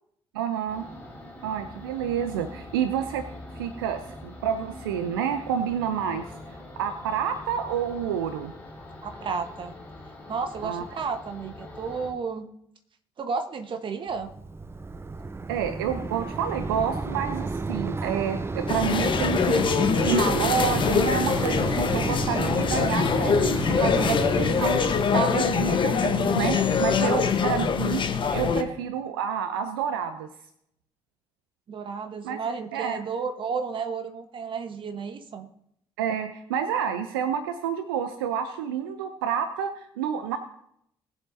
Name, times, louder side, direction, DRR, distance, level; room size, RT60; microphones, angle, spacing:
voice 1, 0.3-0.9 1.4-3.3 3.5-8.5 10.6-10.8 15.5-19.7 20.0-24.8 25.1-28.0 28.3-30.3 32.2-32.4 32.7-33.0 36.0-40.4, right 8 dB, 75° right, 9 dB, 0.6 m, -29 dB
sound 1, 0.7-12.1, left 1 dB, 15° left, 3.6 m, -43 dB
voice 2, 9.0-9.7 10.3-12.5 13.2-14.3 31.7-35.5, right 5 dB, 45° right, 7 dB, 1.3 m, -32 dB
Mechanisms, 14.1-25.1, right 3 dB, 20° right, 0.6 m, -31 dB
sound 2, 18.7-28.6, left 6 dB, 40° left, 1.1 m, -24 dB
19.5 x 7.7 x 2.7 m, 0.72 s
figure-of-eight pair, 45°, 12 cm